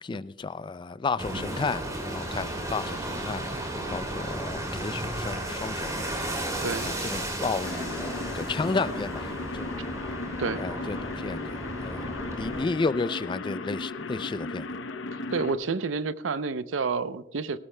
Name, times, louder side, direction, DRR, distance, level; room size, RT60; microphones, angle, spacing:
voice 1, 0.0-3.5 3.9-6.1 6.8-9.8 10.6-14.7, left 4 dB, 25° left, 16 dB, 0.3 m, -32 dB
sound 1, 1.2-12.7, right 1 dB, 20° right, 2.7 m, -34 dB
sound 2, 7.6-15.5, left 3 dB, 85° left, 0.8 m, -36 dB
voice 2, 15.3-17.6, right 4 dB, 85° right, 14 dB, 0.6 m, -29 dB
18.5 x 18.0 x 2.2 m, 0.95 s
head